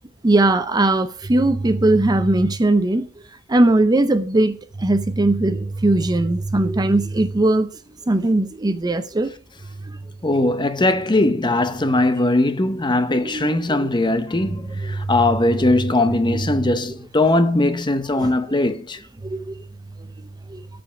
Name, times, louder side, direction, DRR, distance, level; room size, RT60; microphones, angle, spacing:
voice 1, 0.2-3.1 3.5-7.7 8.1-9.3 13.2-13.5 13.8-13.9 18.2-18.3 19.2-19.5 20.5-20.6, right 2 dB, 20° right, 0.5 m, -19 dB
voice 2, 10.2-19.0, left 2 dB, 20° left, 0.8 m, -20 dB
13.5 x 5.1 x 5.9 m
head